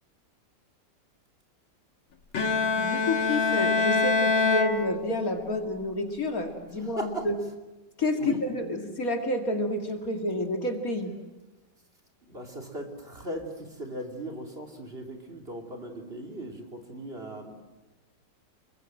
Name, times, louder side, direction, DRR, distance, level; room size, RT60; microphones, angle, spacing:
Bowed string instrument, 2.3-5.5, left 4 dB, 85° left, 2.6 m, -25 dB
voice 1, 2.8-7.3 8.0-11.1, left 2 dB, 50° left, 4 dB, 2.7 m, -29 dB
voice 2, 6.8-7.3 8.2-8.4 12.3-17.6, right 1 dB, 30° right, 2 dB, 3.1 m, -38 dB
28.5 x 22.5 x 7.7 m, 1.1 s
omnidirectional pair, 2.0 m